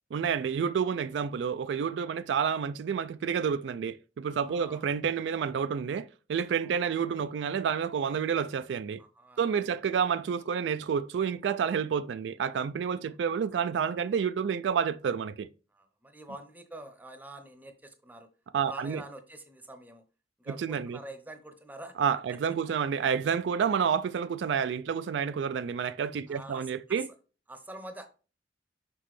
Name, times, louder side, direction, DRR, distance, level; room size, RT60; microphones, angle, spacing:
voice 1, 0.1-9.0 9.4-15.5 18.5-19.0 20.5-21.0 22.0-27.1, right 7 dB, 75° right, 0.3 m, -29 dB
voice 2, 4.4-4.8 6.6-6.7 9.0-9.7 13.0-13.1 15.7-18.3 18.7-20.0 20.4-21.9 26.3-27.0 27.5-28.1, right 1 dB, 10° right, 0.7 m, -46 dB
6.1 x 5.4 x 3.1 m
head